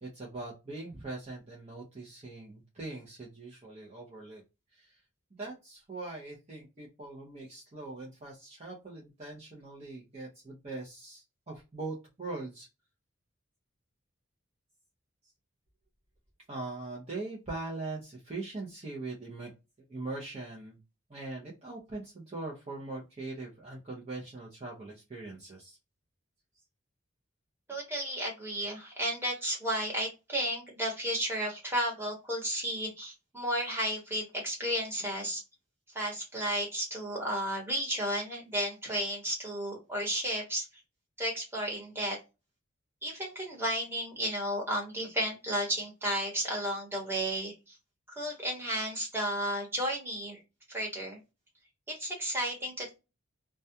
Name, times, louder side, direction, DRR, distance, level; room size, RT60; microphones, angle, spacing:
voice 1, 0.0-4.4 4.7-5.0 5.4-12.7 16.5-19.5 19.9-20.8 21.1-25.8, right 2 dB, 30° right, -4 dB, 0.6 m, -41 dB
voice 2, 27.7-35.4 35.9-40.7 41.2-42.2 43.0-47.8 48.1-50.4 50.7-51.2 51.9-53.0, equal, 10° right, -2 dB, 1.0 m, -33 dB
2.3 x 2.2 x 2.6 m, 0.27 s
head